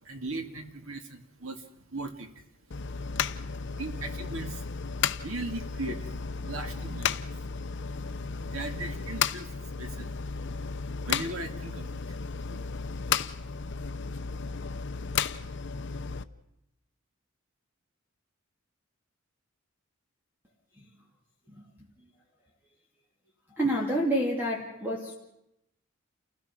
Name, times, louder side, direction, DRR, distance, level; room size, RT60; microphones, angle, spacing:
voice 1, 0.0-2.3 3.8-4.7 5.2-6.0 6.4-7.3 8.4-10.1 11.0-12.2 12.5-12.6, right 2 dB, 85° right, 6 dB, 2.2 m, -38 dB
sound 1, 2.7-16.2, left 6 dB, 60° left, 0.7 m, -34 dB
voice 2, 23.5-25.1, right 1 dB, 10° right, -2 dB, 2.6 m, -28 dB
29.0 x 16.5 x 6.1 m, 0.84 s
head